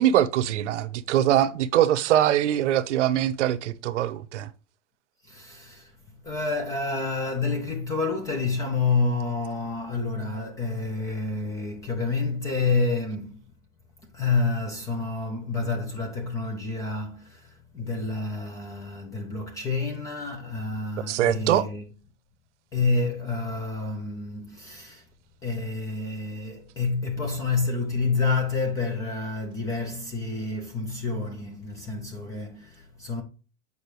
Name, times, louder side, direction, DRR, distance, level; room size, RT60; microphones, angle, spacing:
voice 1, 0.0-4.5 21.1-21.7, right 11 dB, 60° right, 0.8 m, -22 dB
voice 2, 5.2-5.9 6.2-13.4 14.0-21.8 22.7-25.1 25.4-33.2, left 3 dB, 10° left, 0.4 m, -28 dB
8.4 x 5.3 x 3.1 m
hypercardioid pair, 140°, 40 cm